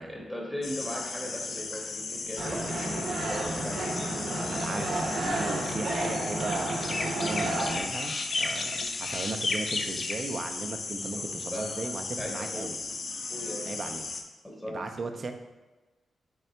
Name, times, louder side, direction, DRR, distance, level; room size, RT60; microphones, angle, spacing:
voice 1, 0.0-5.1 8.6-8.9 11.1-11.2 11.5-11.9 12.2-12.7 13.3-13.9 14.4-14.9, left 1 dB, ahead, -1 dB, 0.8 m, -39 dB
sound 1, 0.6-14.2, left 3 dB, 45° left, 0.4 m, -35 dB
sound 2, 2.4-7.8, right 1 dB, 70° right, 0.8 m, -31 dB
voice 2, 4.5-12.8 13.7-14.0 14.7-15.3, right 3 dB, 40° right, 6 dB, 0.4 m, -37 dB
3.7 x 3.3 x 4.3 m, 1.2 s
wide cardioid pair, 140°, 0 cm